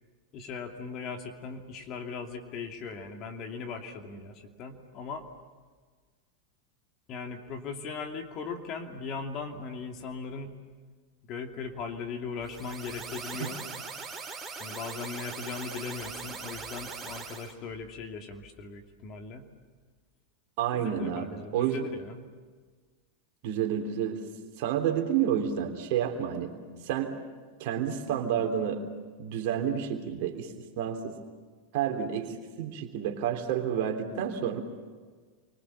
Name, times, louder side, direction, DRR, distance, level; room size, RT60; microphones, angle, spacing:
voice 1, 0.3-5.3 7.1-10.6 11.3-13.6 14.6-19.5 20.7-22.3, left 5 dB, 35° left, 5 dB, 2.7 m, -39 dB
sound 1, 12.4-17.5, right 4 dB, 15° right, 3.7 m, -41 dB
voice 2, 20.6-21.8 23.4-24.2 24.6-26.5 26.8-27.1 27.6-28.8 29.2-31.2 31.7-34.6, right 9 dB, 45° right, 3 dB, 3.4 m, -30 dB
29.5 x 24.5 x 7.2 m, 1.5 s
figure-of-eight pair, 90°, 0 cm